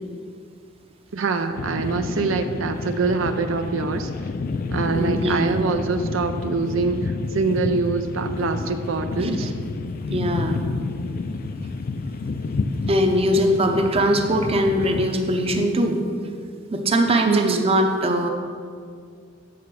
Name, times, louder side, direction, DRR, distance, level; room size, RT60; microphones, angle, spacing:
voice 1, 1.1-4.1 4.7-9.5 17.2-17.7, right 4 dB, 85° right, 7 dB, 0.5 m, -24 dB
sound 1, 1.6-15.6, left 3 dB, 45° left, 0.3 m, -30 dB
voice 2, 4.9-5.6 9.2-9.5 10.1-10.6 12.9-16.0 16.7-18.3, equal, 30° right, 4 dB, 0.7 m, -21 dB
8.6 x 6.9 x 4.8 m, 2.1 s
head